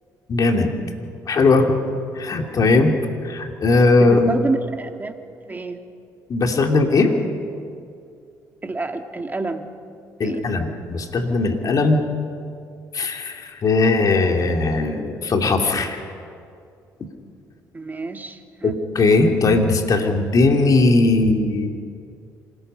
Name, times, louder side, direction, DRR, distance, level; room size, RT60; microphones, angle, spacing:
voice 1, 0.3-0.7 1.3-1.8 2.2-2.9 3.2-4.3 6.3-7.1 10.2-12.0 12.9-16.0 18.6-21.7, left 3 dB, 50° left, 4 dB, 2.6 m, -18 dB
voice 2, 4.0-5.1 5.5-5.8 8.6-9.7 10.2-10.5 17.7-18.8, right 3 dB, 20° right, 5 dB, 2.1 m, -28 dB
26.5 x 19.5 x 5.6 m, 2.4 s
supercardioid pair, 65°, 8 cm